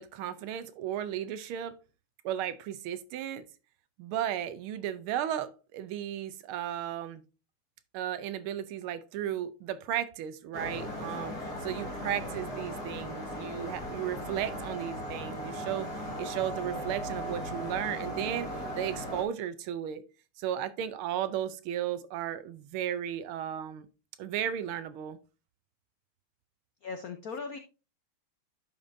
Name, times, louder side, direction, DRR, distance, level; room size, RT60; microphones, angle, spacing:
voice 1, 0.0-1.7 2.2-3.4 4.0-7.2 7.9-15.9 16.2-20.0 20.4-23.9 24.2-25.2, right 10 dB, 80° right, 1.5 m, -35 dB
sound 1, 10.5-19.2, equal, 50° left, 2.0 m, -37 dB
voice 2, 26.8-27.6, left 4 dB, 75° left, 0.8 m, -38 dB
11.0 x 5.3 x 2.6 m
omnidirectional pair, 2.4 m